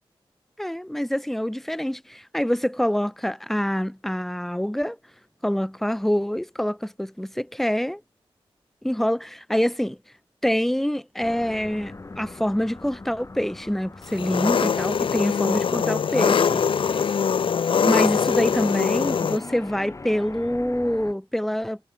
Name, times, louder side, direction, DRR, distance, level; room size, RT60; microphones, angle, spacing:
voice 1, 0.6-5.0 5.4-8.0 8.8-10.0 10.4-16.6 17.8-21.8, equal, 5° left, 0.5 m, -26 dB
sound 1, 11.2-17.1 17.5-21.1, left 3 dB, 30° left, 3.9 m, -41 dB
Engine, 14.1-19.4, left 6 dB, 60° left, 0.5 m, -22 dB
wide cardioid pair, 105°, 10 cm